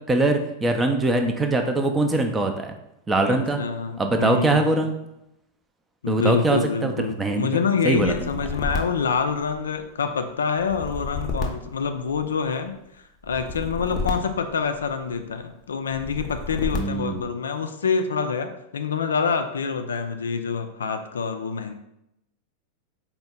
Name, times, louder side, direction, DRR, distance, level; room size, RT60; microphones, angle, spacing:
voice 1, 0.1-2.7 3.1-3.6 4.0-4.9 6.1-7.6 7.8-8.1 16.7-17.3, right 2 dB, 15° right, 5 dB, 0.4 m, -22 dB
voice 2, 3.2-4.9 6.0-12.7 13.2-21.7, left 5 dB, 70° left, 7 dB, 0.3 m, -26 dB
sound 1, 7.9-9.9 10.6-12.5 13.2-15.2 15.9-17.3, left 3 dB, 25° left, 0.6 m, -32 dB
4.2 x 2.0 x 3.6 m, 0.83 s
figure-of-eight pair, 90°, 0 cm